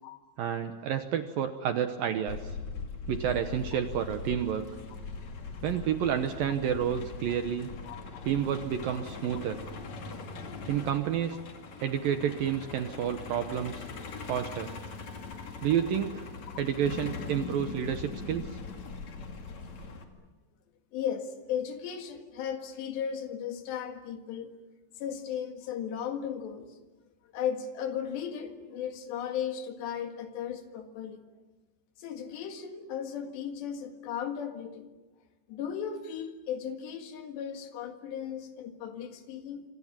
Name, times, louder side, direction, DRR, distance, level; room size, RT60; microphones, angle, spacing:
voice 1, 0.4-2.6 3.1-4.7 5.6-7.7 8.2-9.6 10.7-11.5 11.8-13.9 14.3-14.7 15.6-16.3 16.6-18.6, right 9 dB, 70° right, 8 dB, 2.2 m, -30 dB
Truck, 2.3-20.0, left 4 dB, 45° left, 3.1 m, -41 dB
voice 2, 7.9-8.2 8.9-9.0 20.9-24.5 25.0-26.8 27.2-31.2 32.0-34.9 35.5-39.6, left 8 dB, 75° left, 6 dB, 3.9 m, -36 dB
27.0 x 25.5 x 7.4 m, 1.2 s
omnidirectional pair, 5.2 m